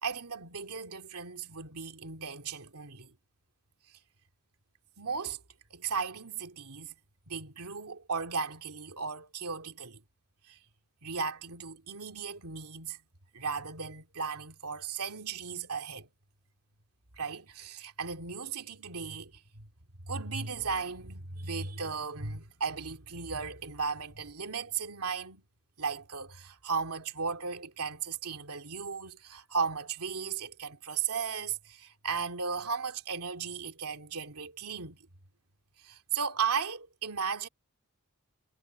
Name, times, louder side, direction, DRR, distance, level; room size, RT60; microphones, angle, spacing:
voice 1, 0.0-3.1 5.0-5.4 5.7-6.9 7.3-10.0 10.5-10.6 11.0-13.0 13.3-16.1 17.2-19.7 20.1-25.4 25.8-35.0 35.8-37.5, right 5 dB, 90° right, 2.6 m, -36 dB
head